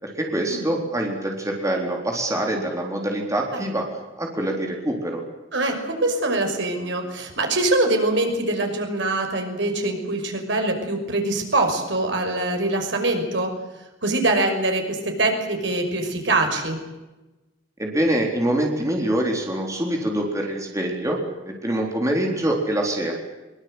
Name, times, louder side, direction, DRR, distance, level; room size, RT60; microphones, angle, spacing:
voice 1, 0.0-3.9 4.2-5.2 17.8-23.1, right 1 dB, 15° right, 1 dB, 4.0 m, -25 dB
voice 2, 5.5-13.5 14.0-16.8, right 2 dB, 70° right, 4 dB, 5.9 m, -23 dB
23.5 x 23.0 x 8.0 m, 1.1 s
head